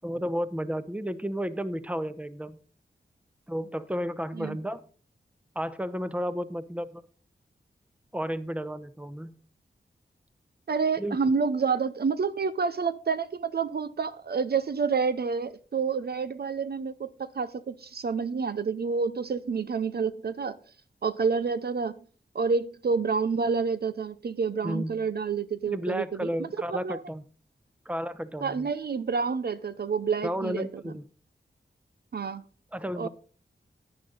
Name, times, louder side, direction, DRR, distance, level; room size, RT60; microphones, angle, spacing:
voice 1, 0.0-2.6 3.5-4.8 5.5-7.0 8.1-9.3 11.0-11.2 24.6-24.9 25.7-27.2 27.9-28.7 30.2-31.0 32.7-33.1, equal, 5° right, 0.8 m, -32 dB
voice 2, 10.7-20.6 21.0-22.0 22.3-27.0 28.4-30.8 32.1-32.4 33.0-33.1, right 5 dB, 55° right, 0.6 m, -28 dB
10.5 x 9.6 x 3.9 m
cardioid pair, 50°, 19 cm